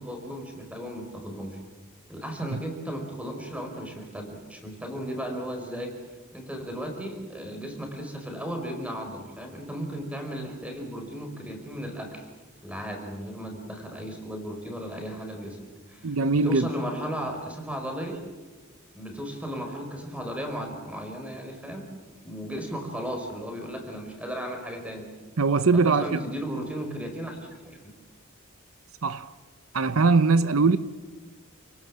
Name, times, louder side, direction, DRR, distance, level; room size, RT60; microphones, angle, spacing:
voice 1, 0.0-1.6 2.1-5.9 6.3-12.3 12.6-16.2 16.4-18.2 18.9-21.9 22.2-25.1 25.7-27.4 27.6-27.9, equal, 5° right, 4.7 m, -35 dB
voice 2, 16.0-16.7 25.4-26.2 29.0-29.3 29.7-30.8, right 4 dB, 75° right, 0.8 m, -21 dB
29.0 x 18.5 x 7.6 m
head